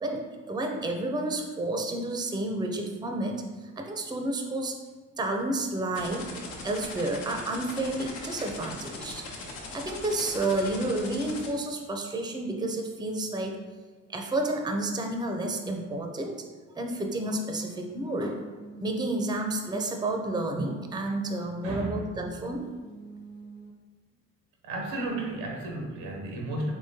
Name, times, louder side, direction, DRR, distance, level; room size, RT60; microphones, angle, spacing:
voice 1, 0.0-3.4 3.8-4.8 5.2-6.3 6.6-9.2 9.7-13.6 14.1-18.4 18.8-22.7, right 2 dB, 10° right, 3 dB, 0.5 m, -30 dB
sound 1, 5.9-11.5, left 3 dB, 75° left, 0.8 m, -40 dB
sound 2, 17.7-23.7, right 4 dB, 30° left, 0.8 m, -48 dB
voice 2, 21.6-22.0 24.6-26.7, right 1 dB, 90° right, 0 dB, 0.8 m, -33 dB
3.7 x 3.0 x 2.7 m, 1.3 s
supercardioid pair, 65°, 34 cm